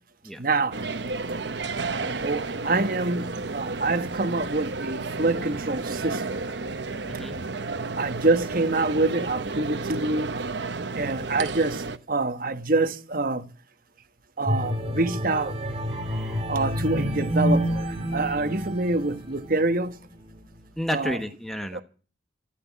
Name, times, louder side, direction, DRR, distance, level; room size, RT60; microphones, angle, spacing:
voice 1, 0.4-0.8 2.0-6.4 8.0-10.3 10.9-13.5 14.4-15.5 16.5-20.0 20.9-21.2 21.7-21.8, right 2 dB, 50° right, 1.3 m, -26 dB
sound 1, 0.7-12.0, right 3 dB, 70° right, 1.1 m, -32 dB
voice 2, 7.1-7.4 15.9-16.4 20.8-21.8, equal, ahead, 1.3 m, -32 dB
sound 2, 14.5-19.7 20.2-20.4, equal, 35° right, 3.1 m, -28 dB
13.0 x 13.0 x 7.3 m
head